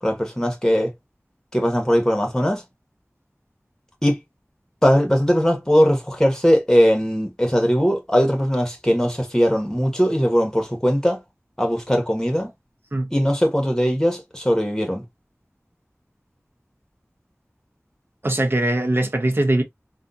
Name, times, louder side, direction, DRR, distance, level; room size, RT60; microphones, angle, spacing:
voice 1, 0.0-0.9 1.5-2.6 4.0-4.2 4.8-11.2 11.6-12.5 13.1-15.0, equal, 10° left, 1.5 m, -19 dB
voice 2, 18.2-19.6, right 1 dB, 45° right, 0.8 m, -21 dB
3.5 x 2.4 x 2.7 m
wide cardioid pair, 40°, 5 cm